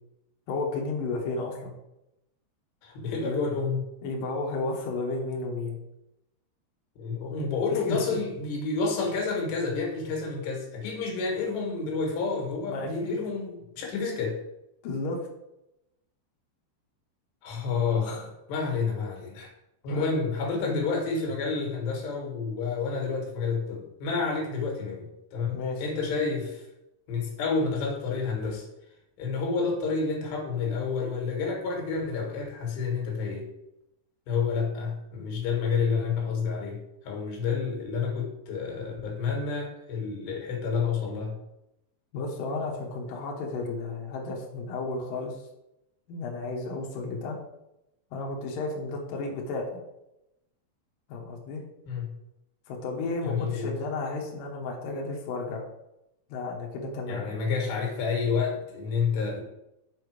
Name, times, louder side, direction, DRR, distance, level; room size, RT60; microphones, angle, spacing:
voice 1, 0.5-1.8 3.1-3.4 4.0-5.8 7.7-8.2 12.6-13.2 14.8-15.2 19.9-20.2 20.6-20.8 25.5-25.8 42.1-45.5 46.1-47.4 48.1-49.8 51.1-51.6 52.7-55.7 56.3-57.5, left 3 dB, 65° left, -1 dB, 2.6 m, -33 dB
voice 2, 2.8-3.8 7.0-14.4 17.4-19.5 19.8-26.7 27.1-28.7 29.2-33.5 34.3-41.4 51.9-52.1 53.2-53.7 57.1-59.4, left 4 dB, 85° left, 0 dB, 3.9 m, -29 dB
7.0 x 5.5 x 4.9 m, 0.88 s
omnidirectional pair, 4.8 m